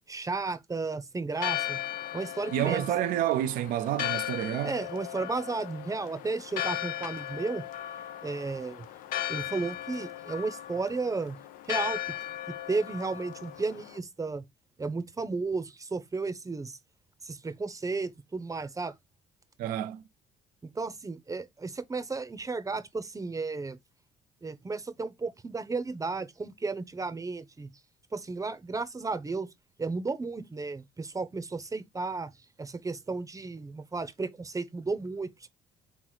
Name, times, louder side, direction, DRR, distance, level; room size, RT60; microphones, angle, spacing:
voice 1, 0.1-1.8 2.1-2.9 4.6-7.6 8.2-8.9 9.3-11.4 11.7-12.1 12.7-14.4 14.8-16.8 17.2-18.9 20.7-23.8 24.4-27.7 28.1-29.5 29.8-32.3 32.6-35.5, right 3 dB, 20° right, 0.8 m, -33 dB
Church bell, 1.3-14.0, left 12 dB, 65° left, 0.5 m, -37 dB
voice 2, 2.5-4.8 19.6-20.0, right 12 dB, 65° right, 0.5 m, -29 dB
3.7 x 3.1 x 3.9 m
hypercardioid pair, 60°, 15 cm